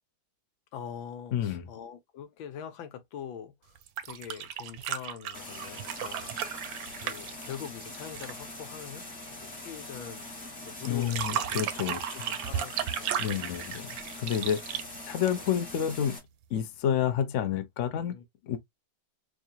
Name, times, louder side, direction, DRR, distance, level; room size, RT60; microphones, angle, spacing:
voice 1, 0.7-6.7 7.0-10.3 10.6-11.7 12.3-13.9 15.3-15.5 17.9-18.3, left 8 dB, 90° left, 1.6 m, -44 dB
voice 2, 1.3-1.6 10.9-12.0 13.2-14.8 15.0-16.2 16.5-18.1 18.5-18.6, left 9 dB, 60° left, 0.8 m, -29 dB
sound 1, 3.8-8.4 10.9-15.7 17.1-17.2, right 10 dB, 80° right, 1.3 m, -35 dB
sound 2, 5.3-16.2, left 2 dB, 30° left, 1.6 m, -43 dB
4.8 x 2.6 x 2.7 m
omnidirectional pair, 2.1 m